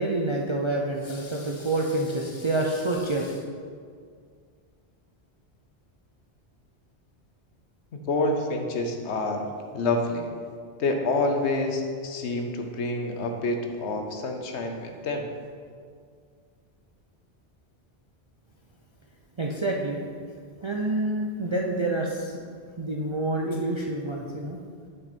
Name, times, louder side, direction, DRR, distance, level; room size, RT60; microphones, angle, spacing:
voice 1, 0.0-3.4 19.4-20.0 20.6-22.4 22.8-24.6, right 2 dB, 45° right, -1 dB, 0.3 m, -27 dB
voice 2, 7.9-9.5 9.7-10.2 10.8-15.3, left 2 dB, 80° left, 4 dB, 1.1 m, -27 dB
6.8 x 5.5 x 4.2 m, 2.1 s
omnidirectional pair, 1.1 m